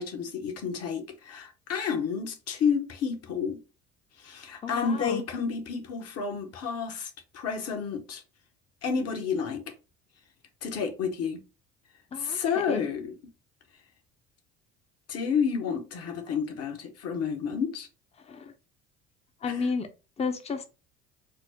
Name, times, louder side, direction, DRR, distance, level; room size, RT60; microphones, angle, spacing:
voice 1, 0.0-3.6 4.2-8.2 8.8-9.6 10.6-11.4 12.2-13.2 15.1-17.9 19.4-19.6, left 6 dB, 50° left, 1.0 m, -30 dB
voice 2, 4.6-5.2 12.1-12.4 12.7-12.8 18.2-18.5 19.4-19.9 20.2-20.7, left 5 dB, 20° left, 0.6 m, -32 dB
4.3 x 2.0 x 2.8 m
hypercardioid pair, 70°, 30 cm